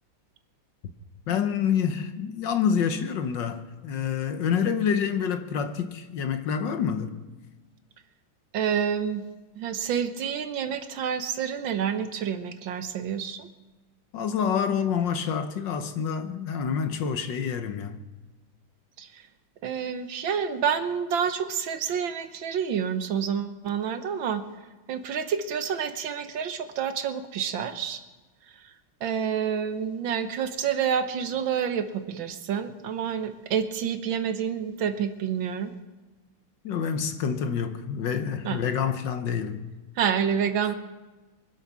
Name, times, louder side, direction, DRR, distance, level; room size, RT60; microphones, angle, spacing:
voice 1, 1.3-7.3 14.1-18.0 36.6-39.6 40.6-40.7, left 7 dB, 65° left, 1.5 m, -27 dB
voice 2, 8.5-9.2 9.6-13.5 19.0-19.2 19.6-24.4 24.9-28.0 29.0-35.7 38.4-38.7 40.0-40.7, right 7 dB, 65° right, 1.6 m, -28 dB
23.5 x 8.3 x 6.1 m
omnidirectional pair, 2.4 m